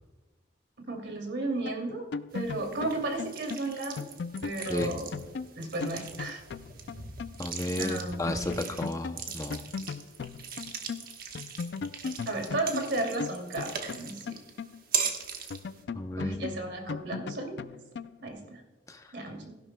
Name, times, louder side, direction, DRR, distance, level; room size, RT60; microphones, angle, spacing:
voice 1, 0.9-4.0 4.4-5.1 5.5-6.4 7.7-8.7 12.3-14.3 16.2-17.6 18.2-18.6 19.1-19.5, right 2 dB, 75° right, 2 dB, 2.6 m, -34 dB
sound 1, 1.6-7.4 7.7-7.8 8.1-11.1 11.3-15.1 15.5-18.3, left 5 dB, 70° left, 0.4 m, -38 dB
sound 2, 2.3-15.8, right 7 dB, 50° right, 1.2 m, -39 dB
voice 2, 7.4-9.6 15.9-16.5 18.9-19.1, left 1 dB, 20° left, 6 dB, 0.6 m, -33 dB
16.0 x 11.0 x 2.2 m, 1.2 s
head